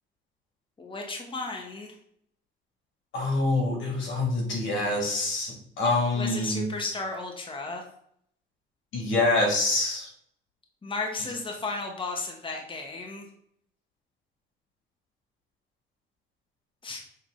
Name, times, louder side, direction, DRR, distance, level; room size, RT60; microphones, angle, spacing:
voice 1, 0.8-1.9 6.2-7.8 10.8-13.3 16.8-17.0, left 3 dB, 25° left, 2 dB, 1.1 m, -34 dB
voice 2, 3.1-6.7 8.9-10.1, left 2 dB, 80° left, -1 dB, 2.4 m, -26 dB
6.8 x 3.6 x 3.8 m, 0.68 s
cardioid pair, 90°, 20 cm